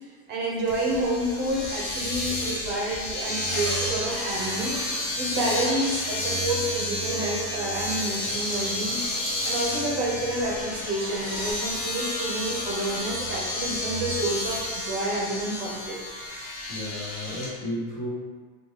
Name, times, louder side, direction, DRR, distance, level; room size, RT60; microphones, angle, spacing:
voice 1, 0.0-4.8 5.2-9.0 9.4-16.0, right 1 dB, 30° right, -3 dB, 0.5 m, -29 dB
Domestic sounds home sounds, 0.7-17.5, left 1 dB, 85° left, 1.2 m, -31 dB
sound 1, 3.5-11.5, left 1 dB, 15° left, 0.7 m, -40 dB
voice 2, 16.7-18.1, left 1 dB, 60° left, -7 dB, 1.4 m, -33 dB
2.6 x 2.3 x 3.1 m, 1.4 s
cardioid pair, 170°, 39 cm